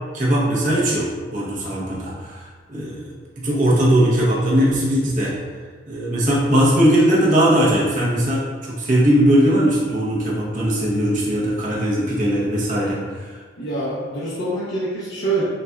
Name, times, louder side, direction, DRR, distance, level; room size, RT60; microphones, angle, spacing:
voice 1, 0.1-2.4 2.7-3.1 3.4-5.3 5.9-13.3, equal, 45° right, -6 dB, 0.9 m, -19 dB
voice 2, 13.6-15.4, right 2 dB, 70° left, -10 dB, 0.9 m, -25 dB
6.4 x 2.5 x 2.2 m, 1.5 s
head